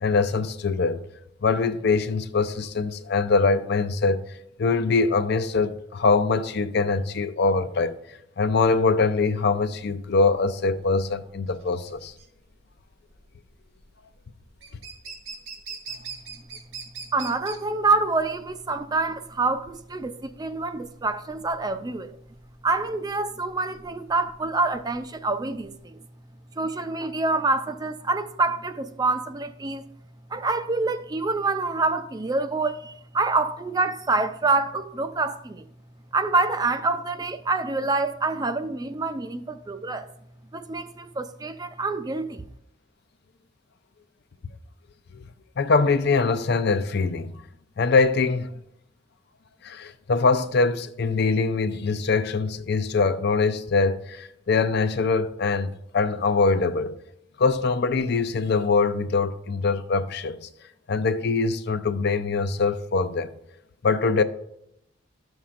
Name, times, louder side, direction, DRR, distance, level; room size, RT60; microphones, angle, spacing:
voice 1, 0.0-1.0 1.4-4.2 4.6-7.9 8.4-12.1 45.6-47.4 47.8-48.5 49.6-57.0 57.4-60.5 60.9-63.3 63.8-64.2, left 4 dB, 60° left, 0.5 m, -23 dB
sound 1, 9.4-25.8, right 5 dB, 85° right, 1.9 m, -43 dB
voice 2, 17.1-22.2 22.6-26.0 26.6-29.8 30.3-35.6 36.1-40.1 40.5-42.5, right 3 dB, 20° right, 0.4 m, -26 dB
12.0 x 7.1 x 2.5 m
head